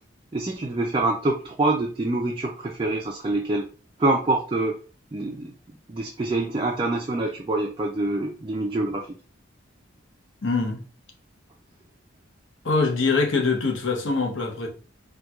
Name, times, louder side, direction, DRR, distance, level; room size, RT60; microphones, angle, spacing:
voice 1, 0.3-3.7 4.0-4.8 5.1-5.5 5.9-9.1, right 2 dB, 25° right, 0.3 m, -25 dB
voice 2, 10.4-10.8 12.6-14.7, left 4 dB, 70° left, 0.7 m, -23 dB
4.3 x 2.2 x 2.3 m
head